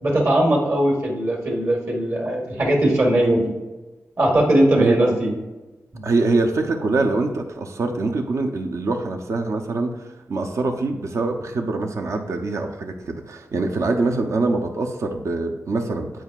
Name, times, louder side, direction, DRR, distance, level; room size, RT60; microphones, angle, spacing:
voice 1, 0.0-3.5 4.2-5.3 5.9-6.0, right 1 dB, 50° right, 0 dB, 1.5 m, -19 dB
voice 2, 6.0-16.2, right 3 dB, 70° right, 3 dB, 0.7 m, -24 dB
9.2 x 4.4 x 2.4 m, 1.1 s
wide cardioid pair, 125°, 5 cm